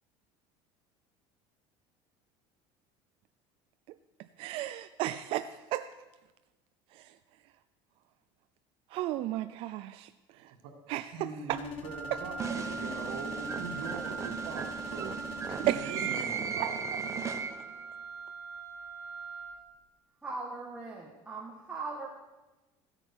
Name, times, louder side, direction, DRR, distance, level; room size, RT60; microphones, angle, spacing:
voice 1, 4.4-5.9 8.9-10.1 10.9-11.6 15.5-16.2 16.6-16.7 17.2-17.3, right 14 dB, 55° right, 10 dB, 0.5 m, -33 dB
voice 2, 11.1-14.7 14.9-15.1 15.5-16.8, right 4 dB, 85° right, 1 dB, 1.9 m, -41 dB
sound 1, 11.5-15.8, left 3 dB, 55° left, 1.5 m, -46 dB
Wind instrument woodwind instrument, 11.8-19.6, right 4 dB, 25° left, 2.8 m, -42 dB
sound 2, 12.4-17.8, right 6 dB, 25° right, 1.0 m, -37 dB
voice 3, 20.2-22.1, right 3 dB, 10° right, -3 dB, 1.5 m, -39 dB
15.5 x 9.0 x 6.2 m, 1.1 s
cardioid pair, 145°, 11 cm